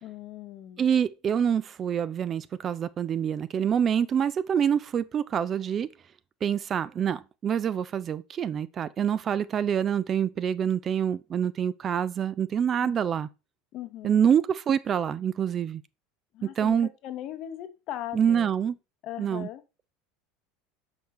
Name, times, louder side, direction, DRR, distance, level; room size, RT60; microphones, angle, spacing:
voice 1, 0.0-0.8 12.8-12.9 13.7-14.2 16.3-18.5 19.0-19.6, left 12 dB, 45° left, 0.8 m, -39 dB
voice 2, 0.8-5.9 6.4-13.3 14.0-15.8 16.4-16.9 18.1-18.8 19.2-19.5, right 8 dB, 30° right, 0.3 m, -26 dB
6.2 x 5.6 x 3.1 m
figure-of-eight pair, 75°, 0 cm